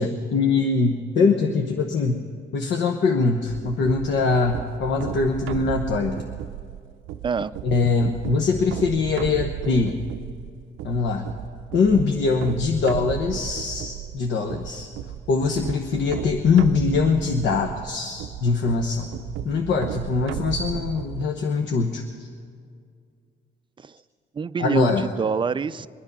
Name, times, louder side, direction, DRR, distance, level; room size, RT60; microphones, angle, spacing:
voice 1, 0.0-6.2 7.6-10.0 10.8-11.3 11.7-14.9 15.3-19.1 19.4-22.3 24.6-25.1, left 4 dB, 70° left, 3 dB, 1.0 m, -22 dB
sound 1, 3.4-21.3, right 11 dB, 80° right, 0.5 m, -34 dB
voice 2, 24.3-25.9, right 6 dB, 25° right, 15 dB, 0.4 m, -26 dB
23.0 x 9.9 x 5.4 m, 2.2 s
cardioid pair, 90°, 20 cm